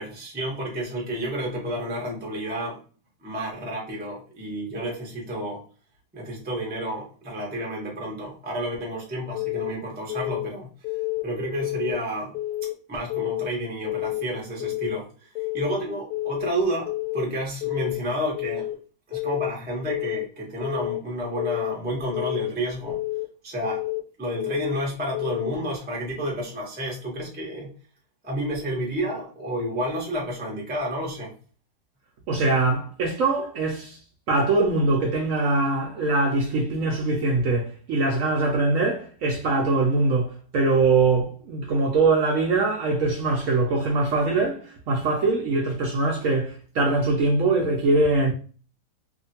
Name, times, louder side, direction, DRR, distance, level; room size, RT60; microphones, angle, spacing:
voice 1, 0.0-2.8 3.2-5.6 6.1-10.7 11.2-12.4 12.9-15.3 15.5-18.7 19.1-23.0 23.4-23.8 24.2-27.7 28.2-31.3, right 1 dB, 10° right, 0.4 m, -30 dB
Keyboard (musical) / Alarm, 9.3-9.7 10.1-10.5 10.8-11.2 11.6-12.0 12.3-12.7 13.1-13.5 13.9-14.2 14.6-15.0 15.4-15.7 16.1-16.5 16.9-17.2 17.6-18.0 18.4-18.7 19.1-19.5 19.9-20.2 20.6-21.0 21.4-21.8 22.1-22.5 22.9-23.3 23.6-24.0 24.4-24.8 25.1-25.5, left 18 dB, 80° left, 1.1 m, -29 dB
voice 2, 32.3-34.0 34.3-48.3, right 3 dB, 70° right, 0.8 m, -22 dB
2.7 x 2.5 x 2.7 m
omnidirectional pair, 1.8 m